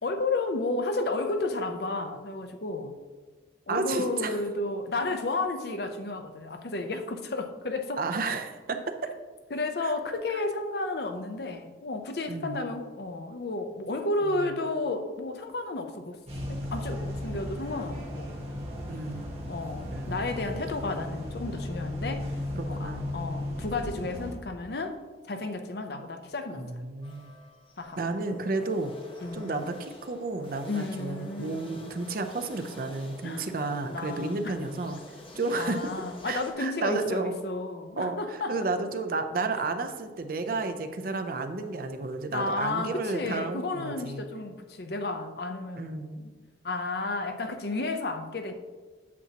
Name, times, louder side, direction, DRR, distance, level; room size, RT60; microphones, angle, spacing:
voice 1, 0.0-3.0 3.7-8.0 9.5-16.2 16.5-18.4 19.5-22.3 22.7-25.0 25.3-26.7 27.8-28.0 29.2-29.5 30.7-31.8 33.2-33.5 33.9-34.6 35.5-38.6 42.3-46.3 46.6-48.5, left 2 dB, 60° left, 6 dB, 0.6 m, -32 dB
voice 2, 3.7-4.4 8.0-8.9 9.8-9.9 12.3-12.6 14.2-14.5 18.9-19.3 19.9-20.6 22.5-23.1 26.5-27.3 28.0-28.9 29.3-35.0 35.4-35.8 36.2-37.3 38.0-44.2 45.7-46.1, right 3 dB, 50° right, 6 dB, 0.6 m, -32 dB
sound 1, 16.3-24.3, left 1 dB, 35° right, 1.2 m, -35 dB
sound 2, 27.0-36.5, left 1 dB, 30° left, 0.9 m, -49 dB
8.4 x 7.1 x 2.9 m, 1.4 s
head